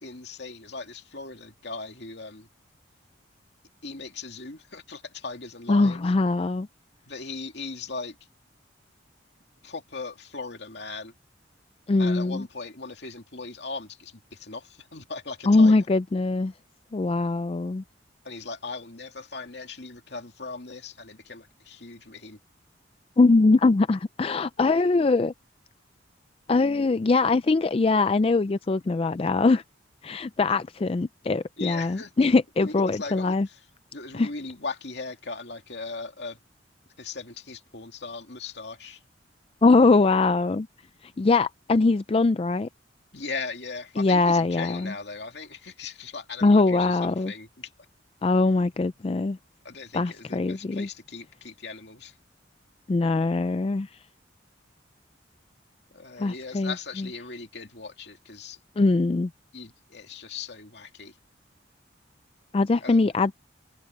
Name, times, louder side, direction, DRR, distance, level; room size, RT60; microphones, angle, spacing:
voice 1, 0.0-2.5 3.8-6.1 7.1-8.1 9.6-11.1 12.0-15.8 17.2-17.3 18.2-22.4 31.6-32.1 32.6-33.4 33.9-36.4 37.0-39.0 43.1-47.7 49.6-52.1 55.9-58.6 59.5-61.1 62.8-63.1, left 4 dB, 60° left, 2.7 m, -38 dB
voice 2, 5.7-6.7 11.9-12.4 15.5-16.5 16.9-17.8 23.2-25.3 26.5-29.6 30.0-33.5 34.1-34.3 39.6-40.7 41.2-42.7 44.0-44.9 46.4-47.3 48.2-49.4 49.9-50.9 52.9-53.9 56.2-57.1 58.8-59.3 62.5-63.4, left 3 dB, 30° left, 0.3 m, -22 dB
head